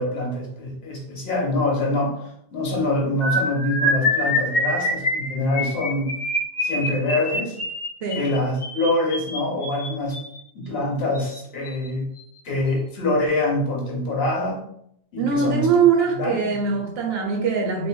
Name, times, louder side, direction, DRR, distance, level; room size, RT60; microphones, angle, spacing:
voice 1, 0.0-2.2 2.5-6.1 6.6-7.6 8.1-10.2 10.5-12.1 12.4-14.6 15.1-15.7 16.1-16.5, left 2 dB, 70° left, -1 dB, 1.1 m, -25 dB
sound 1, 3.2-10.4 11.1-11.4 11.7-11.9 12.2-12.4, left 1 dB, 50° left, 1.0 m, -26 dB
voice 2, 15.2-17.9, right 5 dB, 70° right, 2 dB, 0.9 m, -21 dB
3.7 x 2.5 x 2.2 m, 0.73 s
omnidirectional pair, 1.1 m